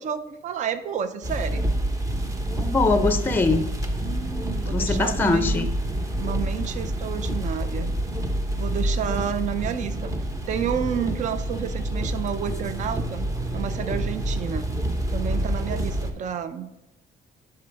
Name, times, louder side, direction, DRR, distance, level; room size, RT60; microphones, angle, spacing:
voice 1, 0.0-1.7 4.0-5.7 6.2-7.9 8.5-10.1 10.5-14.7 15.1-16.7, right 8 dB, 45° right, 11 dB, 0.5 m, -30 dB
sound 1, 1.2-16.1, right 1 dB, 20° right, 0.9 m, -27 dB
voice 2, 2.6-3.6 4.6-5.7, left 3 dB, 10° left, 9 dB, 0.6 m, -22 dB
11.0 x 3.8 x 3.4 m, 0.98 s
cardioid pair, 110°, 17 cm